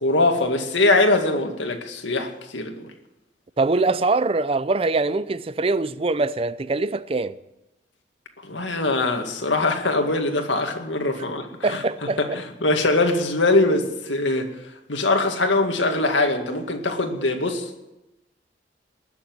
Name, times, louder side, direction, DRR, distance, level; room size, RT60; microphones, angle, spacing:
voice 1, 0.0-2.8 8.4-11.8 12.2-14.5 14.9-17.9, left 2 dB, 85° left, 2.2 m, -22 dB
voice 2, 3.6-7.4 11.6-12.2, right 3 dB, 30° right, 0.5 m, -23 dB
20.0 x 7.2 x 9.6 m
head